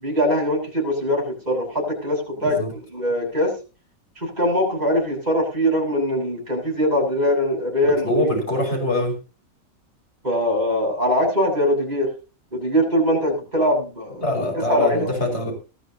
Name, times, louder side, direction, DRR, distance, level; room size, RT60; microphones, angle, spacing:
voice 1, 0.0-3.5 4.2-8.3 10.2-12.1 12.5-15.1, equal, 30° right, 0 dB, 7.7 m, -22 dB
voice 2, 2.4-2.7 7.8-9.1 14.2-15.5, left 1 dB, 50° left, 2 dB, 6.1 m, -24 dB
20.0 x 13.0 x 2.9 m, 0.34 s
omnidirectional pair, 1.5 m